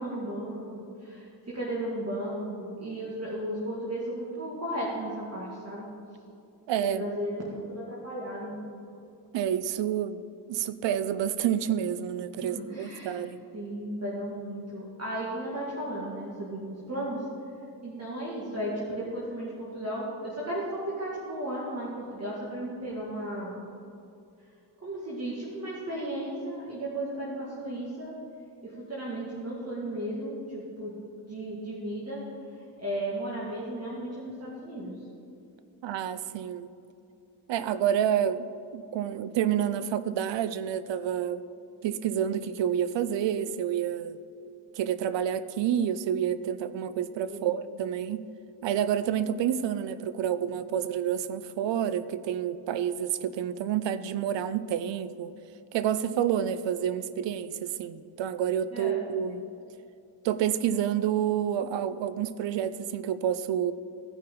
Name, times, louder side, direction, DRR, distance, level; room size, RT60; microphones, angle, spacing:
voice 1, 0.0-5.9 6.8-8.6 12.4-13.2 13.5-17.3 17.8-23.6 24.8-28.1 28.6-31.0 31.3-32.2 32.8-35.0 47.3-47.5 58.7-59.0, right 1 dB, 35° right, -6 dB, 2.0 m, -35 dB
voice 2, 6.7-7.1 9.3-10.2 10.5-13.4 35.8-36.7 37.5-38.5 38.7-41.4 41.8-44.2 44.8-48.3 48.6-55.3 55.7-59.4 60.2-63.7, right 9 dB, 75° right, 14 dB, 0.6 m, -29 dB
15.0 x 5.7 x 3.8 m, 2.6 s
cardioid pair, 60°, 45 cm